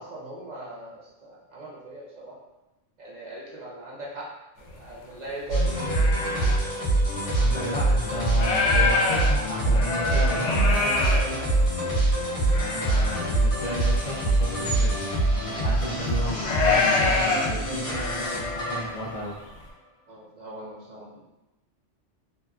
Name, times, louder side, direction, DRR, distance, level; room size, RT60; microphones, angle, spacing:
voice 1, 0.0-2.4 3.0-4.3 4.6-5.7 11.0-11.6 20.1-21.3, right 1 dB, 50° right, -5 dB, 0.5 m, -40 dB
sound 1, 4.7-4.8 5.2-6.6 7.3-7.4 7.8-11.9 12.4-13.3 13.5-13.6 14.1-14.2 14.5-15.1 15.8-18.9, left 3 dB, 85° left, 0.9 m, -26 dB
sound 2, 5.5-19.4, right 2 dB, 45° left, 1.0 m, -24 dB
voice 2, 7.4-10.6 12.5-14.9 15.4-19.3, equal, 65° left, -7 dB, 0.3 m, -34 dB
2.8 x 2.3 x 2.3 m, 0.99 s
omnidirectional pair, 1.3 m